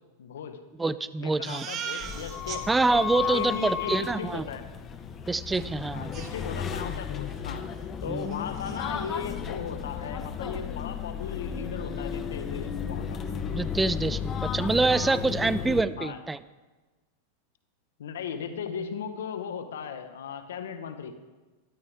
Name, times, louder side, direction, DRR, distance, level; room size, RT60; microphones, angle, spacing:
voice 1, 0.2-0.6 1.2-2.6 3.3-4.6 5.9-7.7 8.0-13.2 16.0-16.2 18.0-21.1, left 7 dB, 85° left, 9 dB, 1.2 m, -37 dB
voice 2, 0.8-1.7 2.7-4.4 5.3-6.1 8.1-8.3 13.5-16.4, right 3 dB, 10° right, 15 dB, 0.4 m, -26 dB
Crying sobbing, 1.4-2.6 3.0-3.1 3.3-3.7 5.5-5.6 6.1-6.9 7.2-7.4 7.8-7.9 8.2-8.9, right 7 dB, 35° right, 1.2 m, -39 dB
sound 1, 2.0-15.8, left 7 dB, 25° left, 0.9 m, -34 dB
13.0 x 12.5 x 3.5 m, 1.2 s
hypercardioid pair, 120°, 0 cm